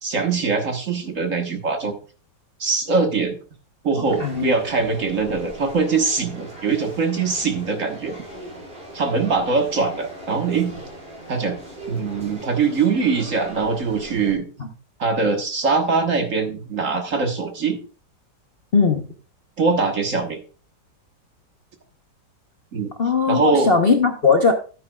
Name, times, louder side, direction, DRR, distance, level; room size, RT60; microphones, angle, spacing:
voice 1, 0.0-1.9 2.6-3.3 3.8-8.2 8.9-10.8 11.3-11.5 11.9-14.4 15.0-17.8 19.6-20.4 22.7-22.9 23.3-23.7, right 4 dB, 45° right, 4 dB, 1.6 m, -22 dB
voice 2, 4.0-4.6 14.6-14.7 18.7-19.1 23.0-24.5, left 5 dB, 45° left, 4 dB, 0.8 m, -19 dB
sound 1, 4.0-14.3, right 1 dB, 30° right, 3.9 m, -39 dB
12.0 x 9.5 x 2.3 m, 0.36 s
omnidirectional pair, 2.0 m